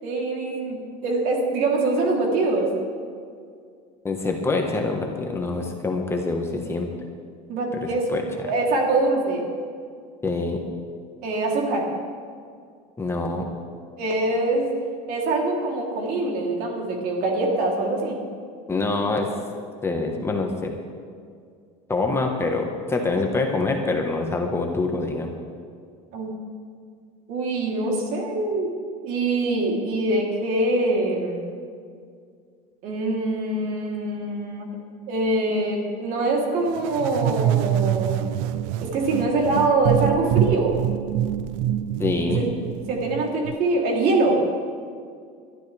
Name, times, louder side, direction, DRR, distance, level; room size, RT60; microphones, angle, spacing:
voice 1, 0.0-2.7 7.5-8.1 8.4-9.4 11.2-11.9 14.0-14.7 15.1-18.2 26.1-26.3 27.3-28.7 29.0-31.4 32.8-34.7 35.1-38.2 38.8-40.8 42.3-42.5 42.9-44.4, right 2 dB, 60° right, -1 dB, 3.3 m, -24 dB
voice 2, 4.0-6.9 7.8-8.2 10.2-10.6 13.0-13.5 18.7-19.3 19.8-20.7 21.9-25.3 42.0-42.5, left 3 dB, 15° left, 2 dB, 1.4 m, -25 dB
sound 1, 36.8-43.5, right 12 dB, 75° right, 0.6 m, -25 dB
21.5 x 12.5 x 3.5 m, 2.2 s
supercardioid pair, 130°, 17 cm